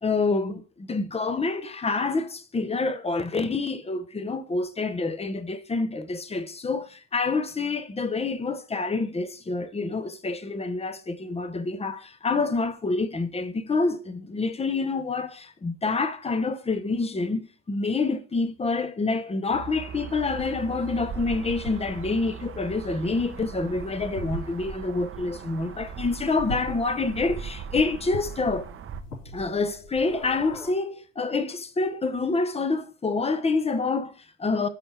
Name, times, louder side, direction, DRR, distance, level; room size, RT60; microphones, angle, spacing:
voice 1, 0.0-28.7 29.3-34.7, left 3 dB, 15° left, 1.1 m, -27 dB
sound 1, 19.5-29.0, right 6 dB, 35° right, 1.0 m, -39 dB
sound 2, 20.2-30.7, equal, 80° left, 4.7 m, -43 dB
12.5 x 4.3 x 3.5 m
hypercardioid pair, 80°, 35 cm